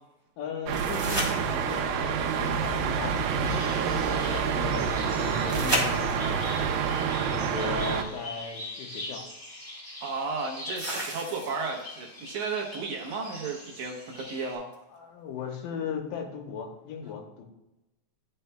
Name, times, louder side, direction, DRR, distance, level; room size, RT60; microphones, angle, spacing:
voice 1, 0.4-4.9 5.2-6.5 7.3-9.2 14.9-17.4, left 6 dB, 80° left, 2 dB, 2.5 m, -37 dB
sound 1, 0.7-2.0 5.5-6.5 8.4-8.5 10.8-11.8 14.7-14.8, right 1 dB, 20° right, 0.7 m, -32 dB
sound 2, 0.7-8.0, right 6 dB, 85° right, 2.5 m, -28 dB
sound 3, 3.4-14.6, left 1 dB, 25° left, 2.4 m, -43 dB
voice 2, 10.0-14.8, right 4 dB, 70° right, -1 dB, 2.2 m, -34 dB
11.0 x 5.6 x 2.2 m, 0.96 s
omnidirectional pair, 4.0 m